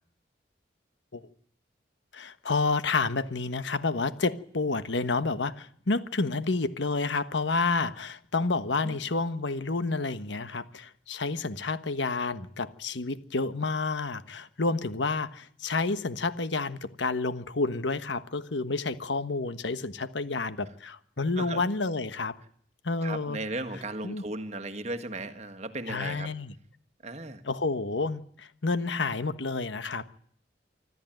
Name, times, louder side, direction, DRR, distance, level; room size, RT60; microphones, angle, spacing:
voice 1, 2.1-22.3 22.8-23.4 24.0-24.2 25.9-26.5 27.4-30.1, left 3 dB, 90° left, 12 dB, 1.3 m, -29 dB
voice 2, 23.0-26.3 27.0-27.4, right 2 dB, 40° right, 8 dB, 1.7 m, -36 dB
25.5 x 13.5 x 9.1 m, 0.63 s
head